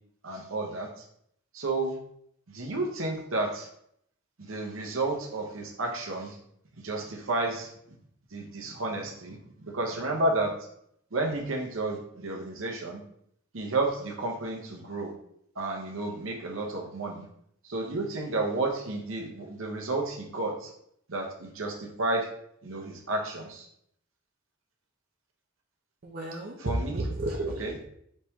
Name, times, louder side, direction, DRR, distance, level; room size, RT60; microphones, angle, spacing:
voice 1, 0.2-1.0 1.5-2.0 2.5-3.7 4.4-6.4 6.8-7.7 8.3-10.5 11.1-13.0 13.5-15.1 15.6-17.3 17.6-20.7 21.1-22.3 22.6-23.7 26.6-27.0 27.6-27.7, right 2 dB, 75° right, 0 dB, 0.9 m, -31 dB
voice 2, 26.0-27.8, right 2 dB, 45° right, -3 dB, 0.5 m, -32 dB
4.2 x 3.0 x 3.5 m, 0.69 s
head